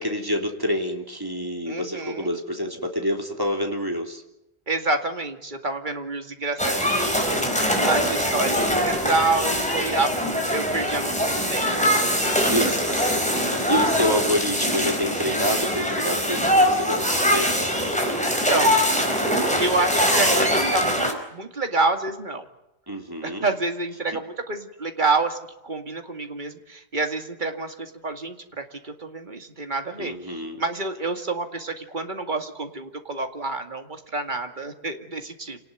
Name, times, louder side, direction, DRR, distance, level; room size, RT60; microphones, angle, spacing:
voice 1, 0.0-4.2 7.7-8.1 12.5-13.0 13.7-17.5 22.9-23.4 30.0-30.6, equal, 20° right, 3 dB, 3.1 m, -27 dB
voice 2, 1.7-2.3 4.7-11.7 11.9-12.8 13.1-13.3 18.3-18.8 19.6-22.5 23.2-35.6, right 3 dB, 45° right, 5 dB, 2.4 m, -28 dB
sound 1, 6.6-21.1, equal, 5° left, 4.6 m, -22 dB
27.5 x 19.0 x 9.4 m, 0.88 s
omnidirectional pair, 1.1 m